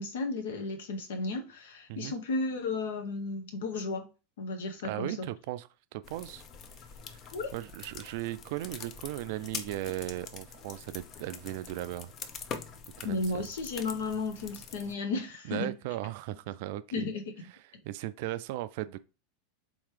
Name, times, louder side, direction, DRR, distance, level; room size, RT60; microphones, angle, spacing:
voice 1, 0.0-4.1 4.4-5.3 7.3-7.5 13.0-15.7 16.9-17.5, left 3 dB, 70° left, 0.8 m, -34 dB
voice 2, 4.8-6.4 7.5-12.1 13.0-13.5 15.4-17.1 17.8-19.0, right 15 dB, 60° right, 0.3 m, -37 dB
sound 1, 6.0-14.9, left 6 dB, 40° left, 0.6 m, -45 dB
3.5 x 3.0 x 3.2 m
hypercardioid pair, 90°, 0 cm